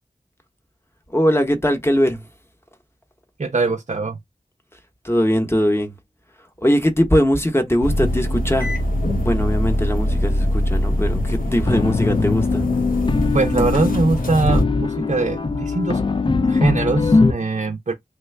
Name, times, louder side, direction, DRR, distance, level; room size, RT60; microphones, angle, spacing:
voice 1, 1.1-2.2 5.0-5.9 6.6-8.7 9.2-12.6, equal, 15° left, 0.8 m, -20 dB
voice 2, 3.4-4.2 13.3-16.0 16.4-17.9, right 3 dB, 50° right, 0.5 m, -22 dB
sound 1, 7.8-14.6, left 1 dB, 70° left, 0.9 m, -22 dB
sound 2, 11.7-17.3, left 4 dB, 35° left, 0.3 m, -21 dB
3.1 x 2.2 x 3.2 m
wide cardioid pair, 45°, 15 cm